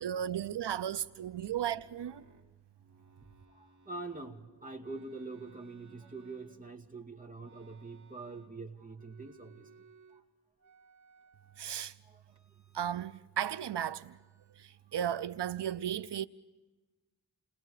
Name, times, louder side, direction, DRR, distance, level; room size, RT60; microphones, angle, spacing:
voice 1, 0.0-2.2 11.6-11.9 12.7-14.2 14.6-16.3, right 10 dB, 90° right, 0.6 m, -35 dB
sound 1, 0.8-4.3 4.8-6.9 7.4-8.6 8.9-10.2 10.6-11.8 12.3-13.2 13.4-14.6, right 4 dB, 45° right, 2.7 m, -63 dB
voice 2, 3.5-9.7 10.1-10.2 12.0-12.2, right 3 dB, 20° right, 2.3 m, -45 dB
29.0 x 20.5 x 4.9 m
wide cardioid pair, 75°, 40 cm